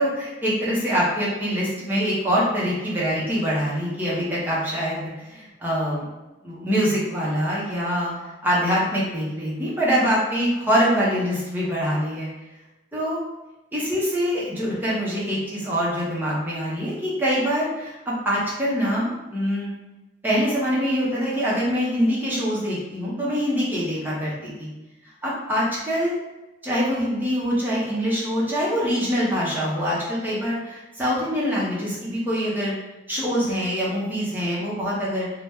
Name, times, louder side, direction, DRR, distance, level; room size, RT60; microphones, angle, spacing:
voice 1, 0.0-6.1 6.4-8.1 8.4-12.3 12.9-13.2 13.7-19.7 20.2-24.7 25.2-26.1 26.6-32.7 33.1-35.3, equal, 10° right, -7 dB, 0.8 m, -24 dB
2.8 x 2.1 x 3.4 m, 1.0 s
head